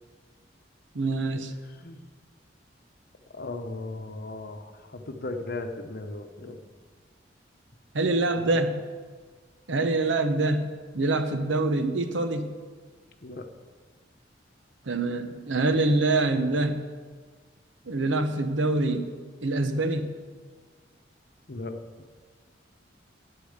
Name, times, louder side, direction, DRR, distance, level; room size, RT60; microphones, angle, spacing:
voice 1, 0.9-1.5 7.9-8.8 9.7-12.6 14.9-16.8 17.9-19.1 19.4-20.1, right 2 dB, 80° right, 8 dB, 0.9 m, -25 dB
voice 2, 1.6-2.0 3.3-6.6 8.4-8.6 13.2-13.5 21.5-21.8, left 2 dB, 55° left, 6 dB, 0.9 m, -37 dB
9.6 x 8.4 x 6.6 m, 1.5 s
head